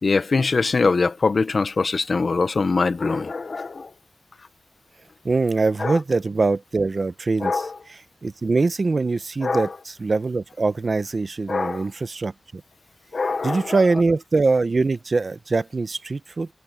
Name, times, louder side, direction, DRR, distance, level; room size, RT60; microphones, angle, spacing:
voice 1, 0.0-3.9 5.8-6.0 7.4-7.7 9.4-9.7 11.5-11.8 13.1-13.8, left 4 dB, 65° left, 0.9 m, -23 dB
voice 2, 5.2-12.6 13.4-16.5, right 3 dB, 55° right, 0.9 m, -23 dB
wide cardioid pair, 100°, 0 cm